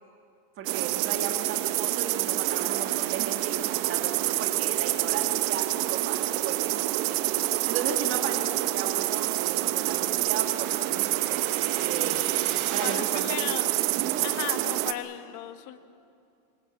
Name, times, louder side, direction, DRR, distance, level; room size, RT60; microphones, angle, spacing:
voice 1, 0.6-11.4 11.8-13.5 14.0-14.3, right 7 dB, 30° right, 3 dB, 1.5 m, -36 dB
sound 1, 0.6-14.9, right 16 dB, 65° right, 1.1 m, -27 dB
sound 2, 6.8-12.9, right 8 dB, 90° right, 4.6 m, -44 dB
voice 2, 12.8-13.7 14.2-15.8, left 12 dB, 45° left, 9 dB, 1.3 m, -36 dB
26.0 x 21.0 x 7.6 m, 2.5 s
cardioid pair, 170°, 42 cm